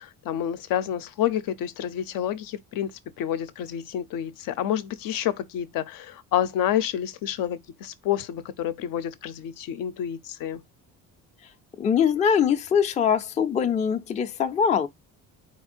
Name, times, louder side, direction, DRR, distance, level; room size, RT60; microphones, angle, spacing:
voice 1, 0.0-10.6, left 10 dB, 75° left, 0.6 m, -29 dB
voice 2, 11.8-14.9, left 7 dB, 20° left, 0.3 m, -22 dB
4.2 x 2.4 x 4.3 m
cardioid pair, 150°, 33 cm